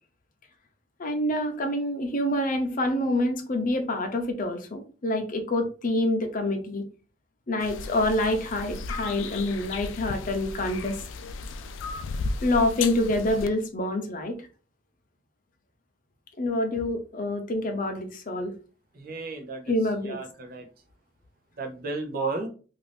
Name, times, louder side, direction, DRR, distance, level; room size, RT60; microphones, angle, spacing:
voice 1, 1.0-6.8 7.5-11.0 12.4-14.4 16.4-18.5 19.7-20.2, left 1 dB, 45° left, 5 dB, 0.6 m, -27 dB
sound 1, 7.6-13.5, left 3 dB, 85° left, 0.3 m, -35 dB
voice 2, 18.9-19.7 20.0-20.7 21.6-22.5, right 3 dB, 50° right, 3 dB, 0.6 m, -33 dB
2.6 x 2.5 x 3.3 m, 0.38 s
head